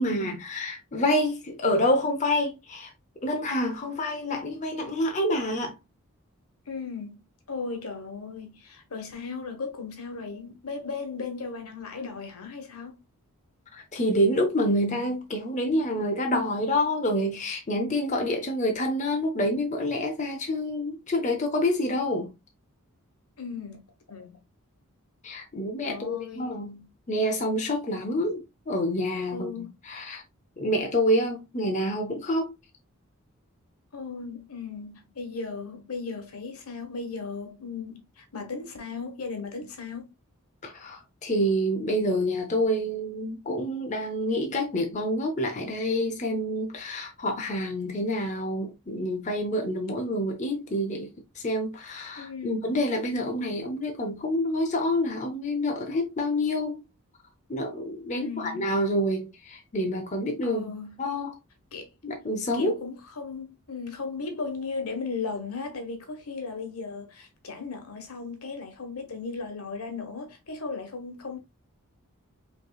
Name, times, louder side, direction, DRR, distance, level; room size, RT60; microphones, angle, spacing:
voice 1, 0.0-2.9 3.2-5.8 13.7-22.3 25.2-30.2 30.6-32.5 40.6-56.8 57.5-60.7 61.0-61.4 62.0-62.8, left 1 dB, 35° left, 0.7 m, -27 dB
voice 2, 6.7-7.2 7.5-13.0 23.4-23.8 24.1-24.4 25.9-26.5 29.3-29.7 33.9-40.1 52.2-52.6 58.1-58.7 60.4-60.9 61.7-61.9 62.5-71.4, left 4 dB, 80° left, 1.2 m, -36 dB
5.2 x 3.1 x 2.3 m
head